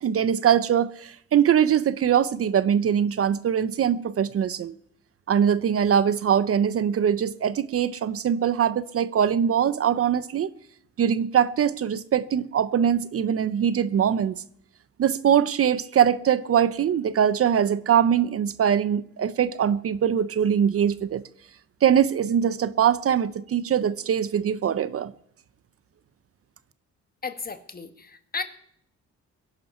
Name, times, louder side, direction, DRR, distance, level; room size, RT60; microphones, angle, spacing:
voice 1, 0.0-4.8 5.3-10.5 11.0-14.3 15.0-21.2 21.8-25.1, right 8 dB, 50° right, 0.7 m, -22 dB
voice 2, 27.2-28.4, left 5 dB, 30° left, 1.6 m, -34 dB
23.0 x 11.0 x 4.4 m
cardioid pair, 90°, 30 cm